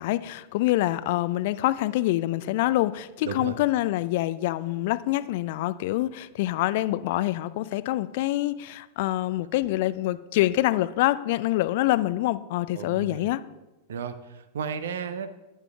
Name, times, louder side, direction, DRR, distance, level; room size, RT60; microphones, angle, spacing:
voice 1, 0.0-13.4, left 16 dB, 50° left, 0.4 m, -26 dB
voice 2, 3.2-3.5 12.7-13.3 13.9-15.3, right 6 dB, 60° right, 0.6 m, -34 dB
14.0 x 9.7 x 2.4 m
figure-of-eight pair, 90°, 0 cm